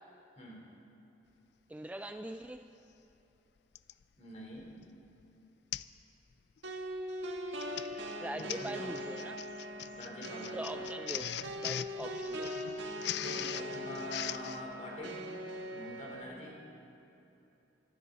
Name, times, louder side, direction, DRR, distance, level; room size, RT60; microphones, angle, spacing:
voice 1, 0.4-0.7 4.2-4.7 5.4-5.5 8.3-9.0 9.9-10.9 13.2-15.2 15.7-16.6, left 1 dB, 40° left, -3 dB, 3.8 m, -45 dB
voice 2, 1.7-2.6 8.2-9.4 10.5-11.3 11.6-12.6, right 1 dB, 10° right, 7 dB, 0.4 m, -42 dB
Printer, 2.6-2.7 3.7-4.0 4.6-4.8 5.1-5.2 5.7-6.0 6.3-6.6 7.4-14.6, left 12 dB, 65° left, 0.4 m, -41 dB
sound 1, 6.6-16.2, equal, 85° right, 1.7 m, -41 dB
24.5 x 13.0 x 4.1 m, 3.0 s
head